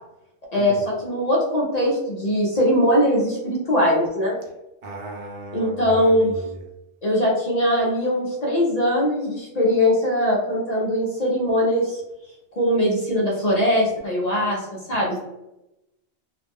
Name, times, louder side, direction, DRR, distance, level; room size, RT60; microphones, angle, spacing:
voice 1, 0.5-4.4 5.5-6.3 7.0-12.0 12.6-14.6 14.9-15.1, equal, 50° left, -3 dB, 0.5 m, -21 dB
voice 2, 4.8-6.5, right 1 dB, 55° right, -1 dB, 0.8 m, -36 dB
2.4 x 2.0 x 3.4 m, 0.92 s
omnidirectional pair, 1.3 m